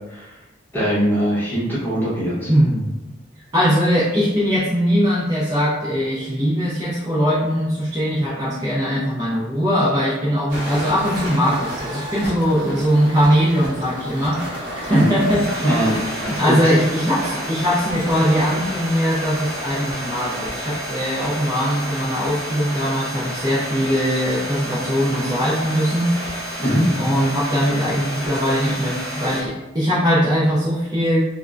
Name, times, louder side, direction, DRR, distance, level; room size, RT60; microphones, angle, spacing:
voice 1, 0.7-2.5 14.9-15.1 15.6-16.0 16.4-16.7 26.6-26.9, equal, 10° left, -9 dB, 0.9 m, -21 dB
voice 2, 2.5-2.9 3.5-26.6 27.0-31.2, equal, 20° right, -8 dB, 0.4 m, -20 dB
sound 1, 10.5-29.4, equal, 45° right, 0.9 m, -30 dB
3.3 x 2.1 x 2.4 m, 1.0 s
head